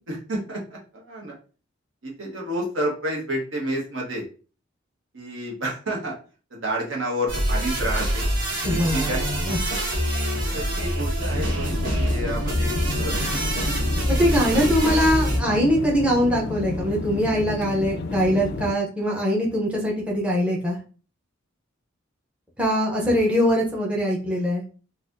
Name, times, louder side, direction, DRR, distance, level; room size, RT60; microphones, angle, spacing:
voice 1, 0.1-1.3 2.0-4.2 5.1-6.1 6.5-8.2 8.6-9.2 10.5-11.5 11.9-13.4 14.5-15.0, right 1 dB, 70° right, -2 dB, 1.2 m, -30 dB
sound 1, 7.3-15.4, equal, 50° right, 1.4 m, -25 dB
voice 2, 8.6-9.6 10.5-10.8 14.2-20.8 22.6-24.6, equal, 5° right, -4 dB, 0.7 m, -22 dB
sound 2, 11.3-18.7, left 3 dB, 55° left, 0.4 m, -31 dB
4.0 x 2.4 x 2.6 m, 0.38 s
head